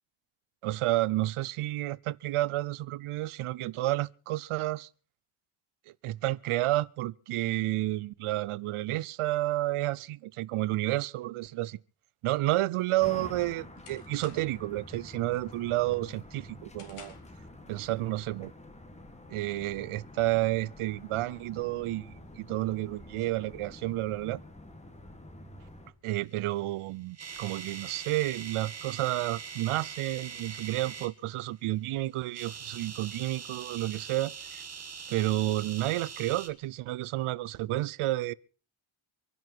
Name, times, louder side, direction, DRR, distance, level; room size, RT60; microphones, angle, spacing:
voice 1, 0.6-4.9 6.0-11.8 12.2-17.1 17.7-18.5 19.3-24.4 26.0-34.6 35.1-38.3, right 16 dB, 85° right, 0.7 m, -31 dB
sound 1, 12.9-14.7 15.1-15.5 15.9-17.4, left 6 dB, 90° left, 4.2 m, -53 dB
sound 2, 13.0-25.9, left 1 dB, 15° left, 1.7 m, -48 dB
sound 3, 26.7-31.1 32.2-36.5, right 6 dB, 30° right, 2.0 m, -42 dB
25.5 x 11.0 x 4.5 m
wide cardioid pair, 165°, 49 cm